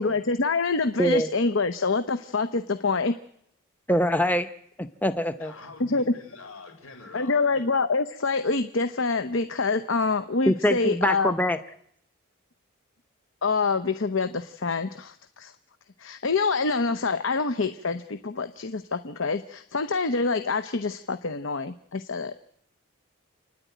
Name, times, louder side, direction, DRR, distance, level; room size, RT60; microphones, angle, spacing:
voice 1, 0.0-3.1 5.8-6.0 7.1-11.3 13.4-15.5 16.0-22.3, left 4 dB, 65° left, 10 dB, 0.8 m, -26 dB
voice 2, 1.0-1.3 3.9-4.5 4.8-5.5 10.5-11.6, equal, 10° left, 9 dB, 0.7 m, -23 dB
voice 3, 5.4-7.7, left 3 dB, 85° left, 4 dB, 5.0 m, -45 dB
28.5 x 10.0 x 9.3 m, 0.71 s
head